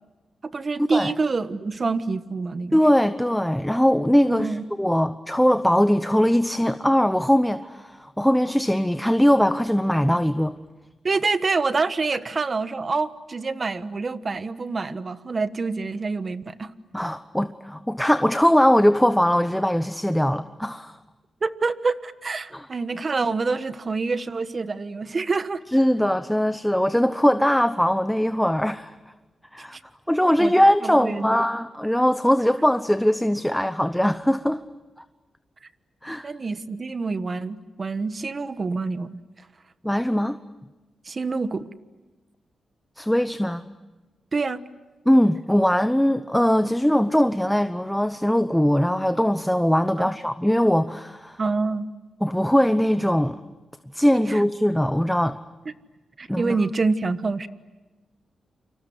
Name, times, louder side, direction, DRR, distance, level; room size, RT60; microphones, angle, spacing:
voice 1, 0.4-2.8 4.3-4.6 11.0-16.7 21.4-25.6 29.7-29.8 30.4-30.5 30.8-31.4 36.2-39.2 41.0-41.7 44.3-44.6 51.4-51.9 54.3-54.4 56.2-57.5, right 4 dB, 40° right, 1.3 m, -26 dB
voice 2, 2.7-10.6 16.9-21.0 22.5-22.7 25.7-29.0 29.5-29.8 30.1-34.6 36.0-36.3 39.8-40.4 43.0-43.6 45.1-51.4 52.2-53.4 53.9-55.4 56.3-56.6, equal, 5° left, 0.8 m, -21 dB
29.0 x 26.0 x 7.9 m
cardioid pair, 85°, 0 cm